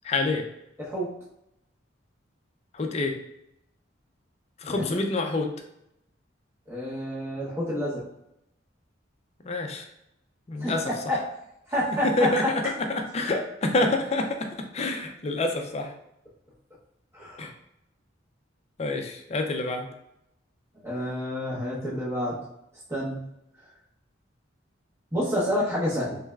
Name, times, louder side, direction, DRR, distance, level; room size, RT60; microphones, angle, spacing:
voice 1, 0.0-0.4 2.7-3.1 4.6-5.5 9.4-9.8 10.5-10.8 12.2-12.4 12.9-14.5 14.7-15.9 17.4-17.5 18.8-19.9, left 2 dB, 35° left, 4 dB, 0.4 m, -27 dB
voice 2, 6.7-8.0 10.6-11.2 11.7-12.7 17.1-17.4 20.8-22.4 22.9-23.2 25.1-26.2, equal, 15° right, -7 dB, 0.8 m, -28 dB
3.3 x 3.2 x 2.2 m, 0.82 s
head